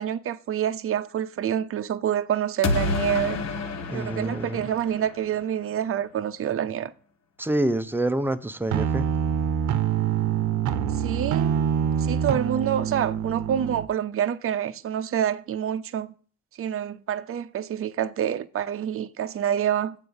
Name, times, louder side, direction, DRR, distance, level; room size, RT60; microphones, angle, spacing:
voice 1, 0.0-3.4 3.9-6.9 10.9-11.7 12.0-16.1 16.6-20.0, right 9 dB, 45° right, 0.6 m, -27 dB
sound 1, 2.6-5.5, left 3 dB, 60° left, 1.2 m, -29 dB
voice 2, 3.9-4.7 7.4-9.1, right 1 dB, 5° right, 0.7 m, -27 dB
sound 2, 8.7-13.9, right 8 dB, 80° right, 0.7 m, -25 dB
7.7 x 4.9 x 7.0 m
cardioid pair, 90°, 30 cm